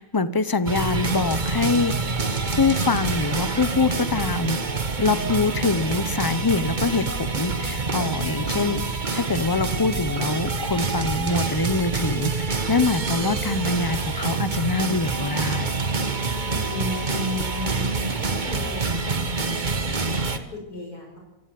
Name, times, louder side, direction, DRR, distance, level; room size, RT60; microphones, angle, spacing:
voice 1, 0.0-1.9 2.5-4.6 5.0-7.1 7.3-15.8, left 3 dB, 20° left, 14 dB, 0.7 m, -24 dB
sound 1, 0.7-20.4, right 4 dB, 30° right, 1.4 m, -26 dB
voice 2, 16.4-19.2 19.6-21.2, left 1 dB, 80° left, 0 dB, 5.7 m, -36 dB
26.0 x 17.0 x 7.8 m, 0.91 s
omnidirectional pair, 1.6 m